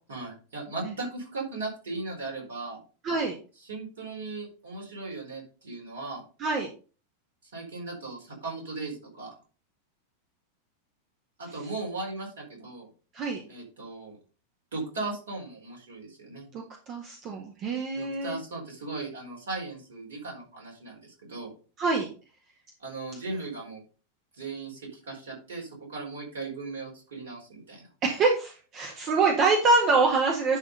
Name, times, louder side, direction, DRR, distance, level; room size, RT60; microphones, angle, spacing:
voice 1, 0.1-2.8 3.6-6.2 7.4-9.3 11.4-12.9 13.5-14.2 14.7-16.5 17.9-21.5 22.8-23.8 24.3-27.9, right 3 dB, 65° right, -1 dB, 4.3 m, -37 dB
voice 2, 16.9-18.4 21.8-22.1 28.0-30.6, right 3 dB, 35° right, 2 dB, 1.6 m, -25 dB
11.0 x 3.7 x 5.3 m, 0.37 s
figure-of-eight pair, 90°, 0 cm